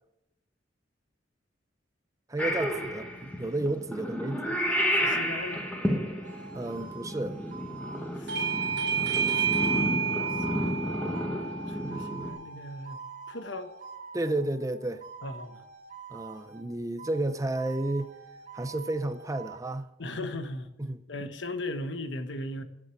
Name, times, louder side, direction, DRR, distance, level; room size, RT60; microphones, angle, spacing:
voice 1, 2.3-4.6 6.5-7.4 14.1-15.0 16.1-18.1 18.5-19.9 20.8-21.0, right 2 dB, 20° right, 0.6 m, -32 dB
Purr / Meow, 2.4-12.3, equal, 10° left, 1.6 m, -31 dB
voice 2, 5.0-5.6 8.2-8.6 9.0-11.3 11.7-13.7 15.2-15.6 20.0-20.7 21.1-22.6, left 1 dB, 70° left, 1.2 m, -38 dB
sound 1, 6.2-14.5 15.0-16.7 17.0-19.6, right 6 dB, 45° right, 2.7 m, -46 dB
Bell / Doorbell, 8.3-13.5, right 6 dB, 65° right, 1.1 m, -31 dB
11.0 x 7.9 x 7.1 m
head